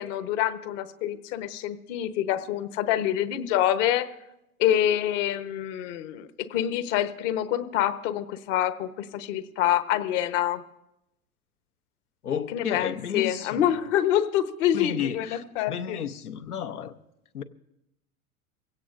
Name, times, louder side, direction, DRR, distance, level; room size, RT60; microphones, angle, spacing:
voice 1, 0.0-4.1 4.6-10.6 12.5-16.0, left 11 dB, 55° left, 1.1 m, -26 dB
voice 2, 12.2-13.7 14.7-16.9 17.3-17.4, left 8 dB, 85° left, 0.9 m, -32 dB
22.5 x 16.5 x 2.6 m
hypercardioid pair, 90°, 44 cm